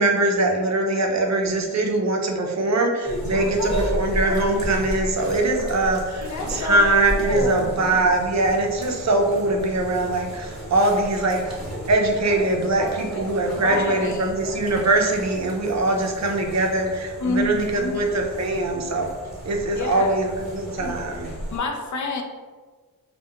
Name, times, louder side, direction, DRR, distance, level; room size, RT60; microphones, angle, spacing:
voice 1, 0.0-11.6 11.9-19.1 19.4-21.3, right 2 dB, 50° right, 2 dB, 0.5 m, -22 dB
sound 1, 3.0-21.6, right 1 dB, ahead, 0.9 m, -33 dB
voice 2, 3.3-3.8 4.2-4.4 6.2-6.8 7.1-8.0 13.6-14.3 17.2-18.1 19.7-20.3 20.8-21.0 21.5-22.2, left 3 dB, 55° left, 3 dB, 0.4 m, -29 dB
2.3 x 2.2 x 2.8 m, 1.4 s
cardioid pair, 55°, 35 cm